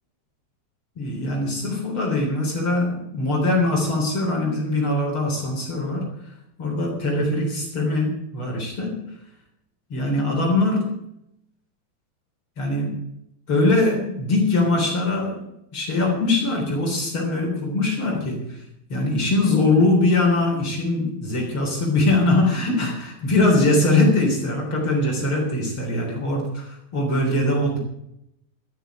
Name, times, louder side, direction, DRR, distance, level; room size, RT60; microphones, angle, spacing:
voice 1, 1.0-6.1 6.6-9.0 9.9-10.9 12.6-13.0 13.5-15.4 15.7-18.6 18.9-27.8, left 2 dB, 35° left, -1 dB, 4.3 m, -22 dB
13.0 x 7.5 x 9.2 m, 0.80 s
omnidirectional pair, 4.6 m